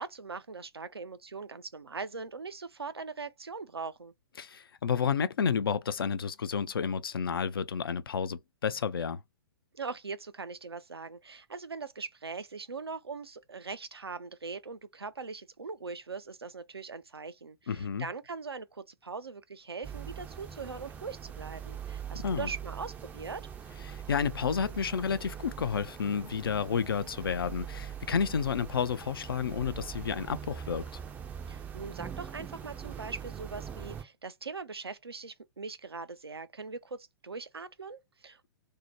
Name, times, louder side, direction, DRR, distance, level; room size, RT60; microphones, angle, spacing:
voice 1, 0.0-4.1 9.7-23.5 31.5-38.5, right 4 dB, 85° right, 0.5 m, -41 dB
voice 2, 4.4-9.2 17.7-18.1 22.1-22.5 23.9-30.8, left 6 dB, 70° left, 0.4 m, -31 dB
sound 1, 19.8-34.0, right 8 dB, 15° right, 0.4 m, -42 dB
2.7 x 2.0 x 3.0 m
figure-of-eight pair, 115°, 13 cm